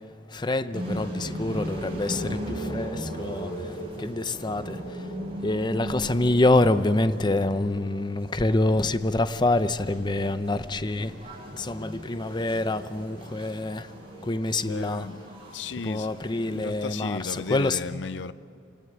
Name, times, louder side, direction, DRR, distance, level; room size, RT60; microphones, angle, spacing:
voice 1, 0.3-3.5 4.0-4.8 5.4-11.1 11.6-13.8 14.3-15.1 15.8-17.8, left 2 dB, 25° left, 0.6 m, -26 dB
sound 1, 0.7-17.8, equal, 35° right, 7.9 m, -38 dB
voice 2, 14.6-15.2 15.5-18.3, left 4 dB, 85° left, 0.5 m, -35 dB
28.0 x 17.0 x 9.5 m
head